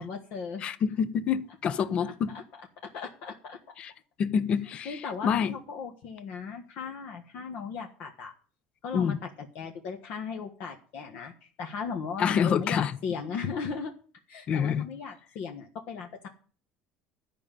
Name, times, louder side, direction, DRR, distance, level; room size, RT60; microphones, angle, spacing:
voice 1, 0.0-0.6 2.0-2.4 2.9-3.6 4.8-8.3 8.8-9.2 9.5-13.9 14.3-16.3, left 5 dB, 55° left, 1.4 m, -37 dB
voice 2, 0.6-2.4 3.8-3.9 4.2-5.0 5.2-5.5 8.9-9.2 12.2-13.0 14.5-14.8, left 7 dB, 35° left, 0.7 m, -27 dB
12.0 x 5.3 x 9.0 m
cardioid pair, 150°, 3 cm